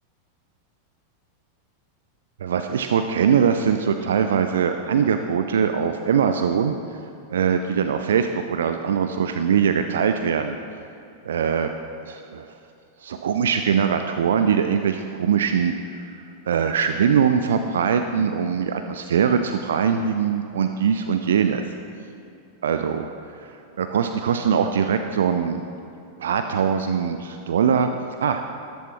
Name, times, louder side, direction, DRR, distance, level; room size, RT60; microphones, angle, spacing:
voice 1, 2.4-6.7 7.3-10.6 11.2-11.7 12.0-12.5 13.0-16.0 16.5-21.7 22.6-23.1 23.4-25.6 26.2-27.9 28.2-28.4, right 7 dB, 65° right, 7 dB, 0.4 m, -22 dB
13.5 x 12.5 x 3.0 m, 2.7 s
figure-of-eight pair, 90°, 0 cm